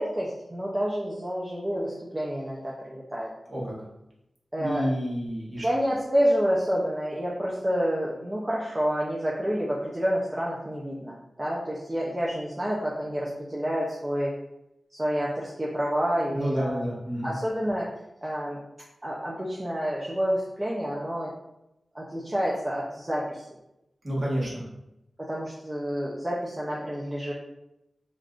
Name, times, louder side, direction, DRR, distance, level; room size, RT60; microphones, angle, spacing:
voice 1, 0.0-3.3 4.5-4.9 5.6-14.3 14.9-16.9 17.2-17.9 18.2-18.6 19.0-21.3 21.9-23.5 25.2-27.3, equal, 20° right, -5 dB, 0.5 m, -28 dB
voice 2, 4.6-5.6 16.3-17.3 24.0-24.6, equal, 35° right, -6 dB, 1.1 m, -29 dB
3.4 x 2.5 x 2.4 m, 0.88 s
wide cardioid pair, 90°, 0 cm